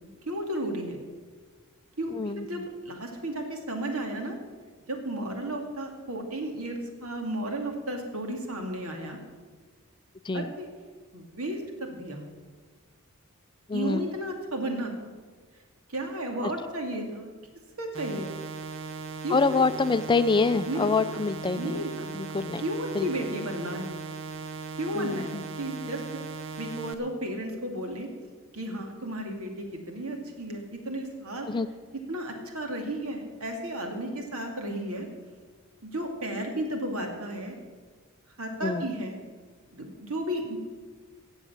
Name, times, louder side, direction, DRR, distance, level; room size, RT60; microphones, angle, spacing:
voice 1, 0.0-1.0 2.0-4.3 4.9-9.2 10.3-10.7 11.1-12.2 13.7-14.9 15.9-17.3 17.8-18.3 19.2-19.6 20.7-21.2 21.5-22.1 22.6-23.9 24.8-26.0 26.6-28.1 28.5-31.5 32.1-35.1 35.9-37.6 38.4-39.2 39.7-40.6, right 1 dB, 80° right, 3 dB, 2.4 m, -33 dB
voice 2, 2.1-2.6 10.2-10.5 13.7-14.0 19.3-21.8 22.1-22.6 22.9-23.1 24.9-25.4 31.4-31.7 38.6-38.9, left 4 dB, 20° left, 12 dB, 0.4 m, -26 dB
sound 1, 17.9-26.9, right 4 dB, 60° right, 0.8 m, -38 dB
17.0 x 7.2 x 7.2 m, 1.5 s
head